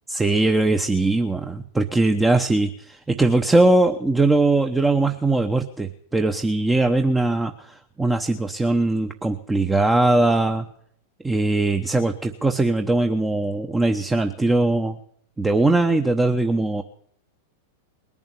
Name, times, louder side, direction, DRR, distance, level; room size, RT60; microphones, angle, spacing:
voice 1, 0.1-10.7 11.2-15.0 15.4-16.8, right 2 dB, 10° right, 6 dB, 1.0 m, -20 dB
20.0 x 7.2 x 9.9 m, 0.67 s
hypercardioid pair, 100°, 0 cm